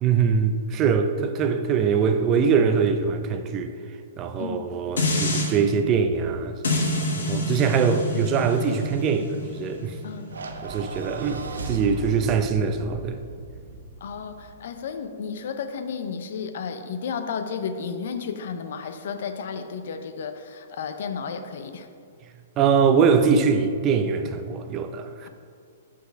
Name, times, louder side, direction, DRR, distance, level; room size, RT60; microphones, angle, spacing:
voice 1, 0.0-3.7 4.2-6.5 7.3-9.9 10.6-13.2 22.6-25.3, right 6 dB, 30° right, 0.5 m, -22 dB
sound 1, 5.0-5.5 6.6-11.8 12.2-12.3, left 2 dB, 85° left, 1.4 m, -28 dB
sound 2, 10.3-14.7, right 2 dB, 90° right, 0.6 m, -36 dB
voice 2, 14.0-21.9, left 6 dB, 65° left, 0.6 m, -33 dB
5.7 x 4.1 x 6.2 m
hypercardioid pair, 140°, 0 cm